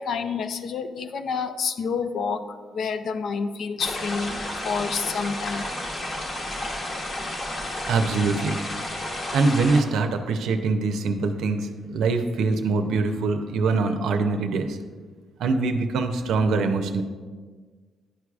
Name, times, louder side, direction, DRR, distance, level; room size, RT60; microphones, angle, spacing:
voice 1, 0.0-2.4 2.7-5.6, left 5 dB, 65° left, 9 dB, 0.4 m, -28 dB
sound 1, 3.8-9.8, left 1 dB, 40° left, 1.1 m, -32 dB
voice 2, 7.9-8.6 9.3-14.8 15.4-17.0, right 3 dB, 80° right, 6 dB, 0.5 m, -23 dB
10.0 x 4.7 x 2.4 m, 1.5 s
cardioid pair, 90°, 0 cm